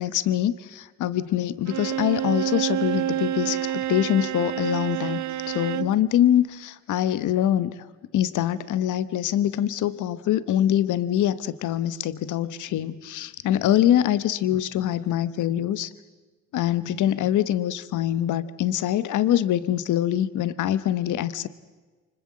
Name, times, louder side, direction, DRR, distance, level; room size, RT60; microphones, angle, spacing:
voice 1, 0.0-7.9 8.1-15.9 16.5-21.5, left 11 dB, 80° left, 15 dB, 1.1 m, -24 dB
Bowed string instrument, 1.7-6.0, right 11 dB, 70° right, 0.9 m, -28 dB
28.5 x 25.5 x 7.5 m, 1.3 s
cardioid pair, 90°, 30 cm